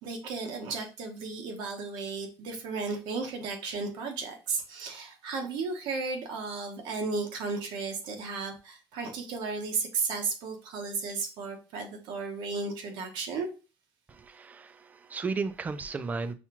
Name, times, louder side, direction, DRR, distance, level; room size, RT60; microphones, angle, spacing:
voice 1, 0.0-13.5, right 4 dB, 80° right, 1.1 m, -34 dB
voice 2, 14.1-16.3, right 4 dB, 20° right, 0.3 m, -34 dB
5.6 x 2.3 x 2.9 m
cardioid pair, 145°, 8 cm